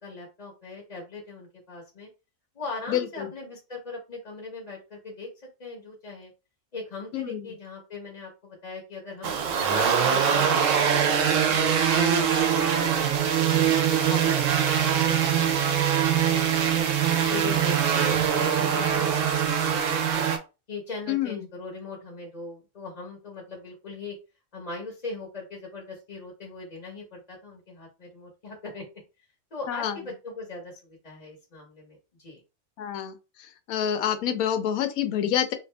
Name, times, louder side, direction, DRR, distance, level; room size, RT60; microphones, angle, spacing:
voice 1, 0.0-2.1 2.5-5.3 5.6-6.3 6.7-9.3 9.7-13.7 14.1-16.9 17.2-20.2 20.7-24.2 24.5-28.8 29.5-32.4, left 3 dB, 35° left, 0.8 m, -39 dB
voice 2, 2.9-3.3 7.1-7.4 21.1-21.4 29.7-29.9 32.8-33.2 33.7-35.5, left 10 dB, 85° left, 1.1 m, -27 dB
sound 1, 9.2-20.4, right 8 dB, 70° right, 1.0 m, -23 dB
2.7 x 2.5 x 3.2 m
omnidirectional pair, 1.5 m